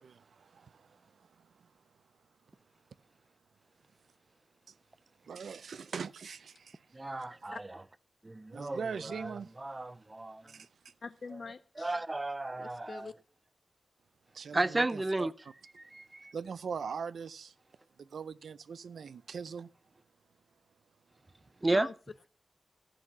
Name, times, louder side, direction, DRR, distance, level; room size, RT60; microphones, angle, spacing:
voice 1, 0.0-1.8 4.7-4.8 5.2-7.3 8.5-9.5 10.5-10.9 14.3-15.3 16.3-17.6 18.0-19.7, right 6 dB, 85° right, 0.5 m, -42 dB
voice 2, 6.9-7.6 8.2-8.8 9.6-10.5 11.8-13.1 14.5-15.3 15.9-16.3 21.6-21.9, right 2 dB, 20° right, 0.4 m, -33 dB
voice 3, 11.0-12.0 12.6-13.1 21.7-21.9, left 4 dB, 50° left, 0.6 m, -44 dB
14.0 x 6.0 x 5.6 m
wide cardioid pair, 145°, 0 cm